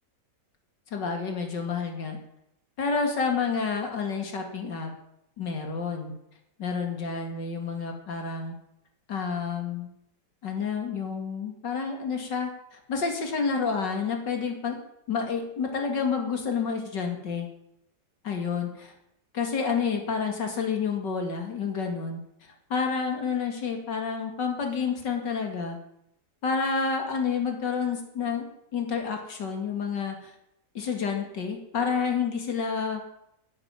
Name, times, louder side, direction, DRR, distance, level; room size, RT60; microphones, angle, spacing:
voice 1, 0.9-2.2 2.8-4.9 5.4-6.1 6.6-8.5 9.1-9.9 10.4-14.8 15.1-17.5 18.2-18.9 19.3-22.2 22.7-25.8 26.4-28.5 28.7-30.3 30.7-33.0, left 5 dB, 85° left, 4 dB, 2.9 m, -29 dB
11.5 x 9.6 x 9.0 m, 0.78 s
omnidirectional pair, 1.8 m